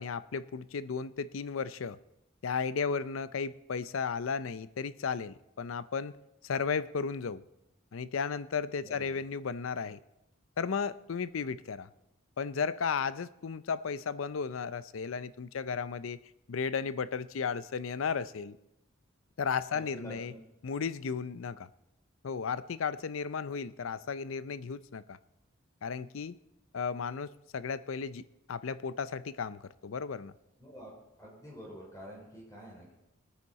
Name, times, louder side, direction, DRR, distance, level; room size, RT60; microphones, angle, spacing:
voice 1, 0.0-2.0 2.4-6.1 6.4-7.4 7.9-10.0 10.6-11.9 12.4-16.2 16.5-18.6 19.4-20.3 20.6-21.7 22.2-25.2 25.8-26.4 26.7-28.2 28.5-30.3, left 5 dB, 90° left, 16 dB, 0.5 m, -34 dB
voice 2, 8.8-9.2 19.7-20.4 30.6-30.9 31.2-32.9, equal, 15° left, -3 dB, 4.3 m, -48 dB
21.0 x 9.3 x 4.2 m, 0.88 s
head